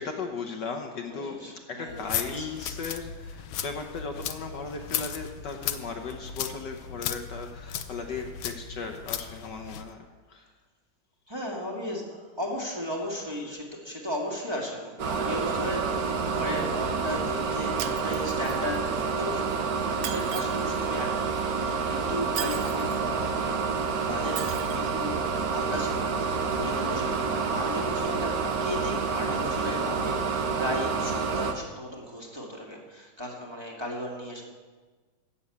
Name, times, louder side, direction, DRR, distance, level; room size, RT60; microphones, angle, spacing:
voice 1, 0.0-10.5 13.3-13.5, left 4 dB, 60° left, 4 dB, 1.6 m, -37 dB
voice 2, 1.1-2.5 11.3-19.5 19.7-34.4, left 1 dB, 15° right, -3 dB, 2.0 m, -36 dB
sound 1, 1.9-9.9, left 9 dB, 80° left, 1.6 m, -36 dB
sound 2, 15.0-31.5, right 5 dB, 50° right, 1.4 m, -28 dB
Shatter, 17.8-18.8 20.0-20.8 22.3-23.0 24.3-24.9, right 10 dB, 70° right, 1.5 m, -37 dB
15.0 x 7.0 x 8.5 m, 1.4 s
omnidirectional pair, 2.2 m